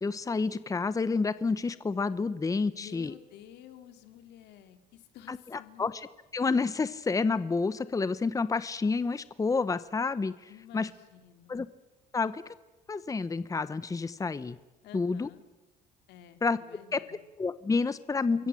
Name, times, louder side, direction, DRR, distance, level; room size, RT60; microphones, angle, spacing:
voice 1, 0.0-3.1 5.3-6.1 6.3-10.9 11.5-11.7 12.1-12.4 12.9-14.6 14.9-15.3 16.4-16.6 16.9-18.5, left 4 dB, 20° left, 15 dB, 1.0 m, -29 dB
voice 2, 2.7-5.9 10.5-11.6 14.8-15.4 16.1-17.2, left 11 dB, 85° left, 8 dB, 2.8 m, -52 dB
29.0 x 23.0 x 7.8 m, 1.1 s
cardioid pair, 110°, 17 cm